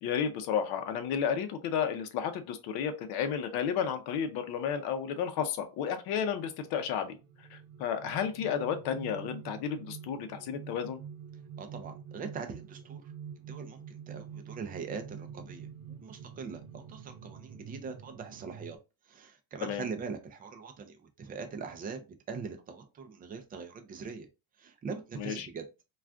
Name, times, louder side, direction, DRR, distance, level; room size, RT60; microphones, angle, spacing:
voice 1, 0.0-7.2 7.5-11.0 19.6-19.8 25.2-25.5, left 8 dB, 60° left, 0.6 m, -32 dB
sound 1, 6.1-18.8, right 7 dB, 75° right, 0.8 m, -47 dB
voice 2, 11.6-18.8 19.1-24.3 24.6-25.7, right 5 dB, 20° right, 0.4 m, -42 dB
2.4 x 2.4 x 3.3 m
cardioid pair, 135°, 42 cm